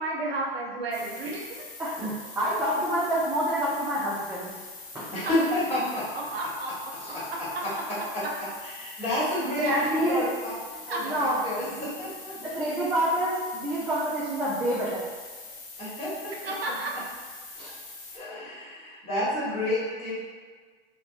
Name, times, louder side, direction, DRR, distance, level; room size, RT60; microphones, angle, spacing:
voice 1, 0.0-1.6 5.3-5.4 6.3-6.7 7.3-7.4 9.4-9.8 10.9-11.0 16.4-16.9, right 2 dB, 90° right, -2 dB, 0.6 m, -31 dB
sound 1, 0.9-18.2, left 3 dB, 65° left, 0.7 m, -44 dB
voice 2, 2.4-4.6 4.9-5.1 7.0-7.2 9.6-10.3 11.0-11.4 11.7-11.8 12.4-15.0 17.6-17.7, right 1 dB, 10° right, -9 dB, 0.4 m, -27 dB
voice 3, 5.1-6.0 7.1-8.2 8.6-9.7 10.1-10.5 10.9-12.3 15.8-16.3 16.7-16.8 18.1-20.2, left 1 dB, 20° left, -9 dB, 1.2 m, -30 dB
2.5 x 2.2 x 2.4 m, 1.5 s
hypercardioid pair, 100°, 29 cm